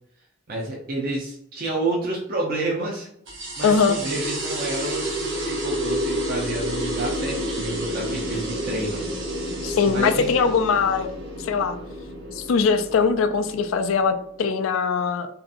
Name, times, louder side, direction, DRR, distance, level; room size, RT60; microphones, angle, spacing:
voice 1, 0.5-3.1 3.6-9.0 9.3-9.4 9.9-10.5, right 2 dB, 45° right, -3 dB, 0.5 m, -29 dB
sound 1, 3.3-14.3, equal, 60° right, 0.9 m, -30 dB
voice 2, 3.6-4.0 9.6-11.1 11.4-11.8 12.3-15.3, left 5 dB, 75° left, 8 dB, 0.3 m, -21 dB
2.7 x 2.4 x 2.4 m, 0.72 s
head